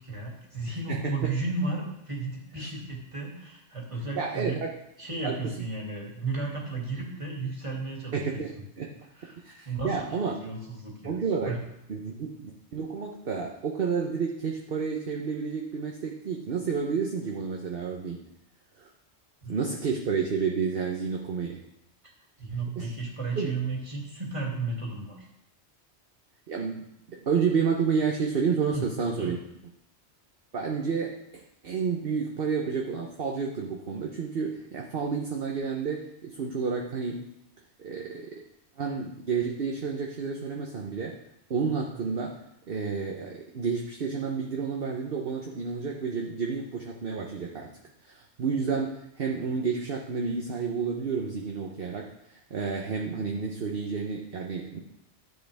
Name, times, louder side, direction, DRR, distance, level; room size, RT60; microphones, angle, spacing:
voice 1, 0.0-4.6 5.0-8.4 9.2-9.4 9.6-11.2 11.4-11.6 19.4-19.6 22.4-25.3 28.7-28.9 29.2-29.4, right 3 dB, 30° right, -3 dB, 2.5 m, -34 dB
voice 2, 0.7-1.0 4.1-4.7 5.2-5.5 8.1-8.5 8.8-8.9 9.4-10.3 11.0-11.5 11.9-18.2 18.8-18.9 19.5-21.6 22.8-23.0 23.4-23.5 26.5-29.4 30.5-37.3 37.8-38.3 38.8-41.1 41.5-42.3 42.7-47.7 48.0-54.8, right 5 dB, 55° right, 0 dB, 1.1 m, -30 dB
13.0 x 7.8 x 3.5 m, 0.81 s
omnidirectional pair, 1.2 m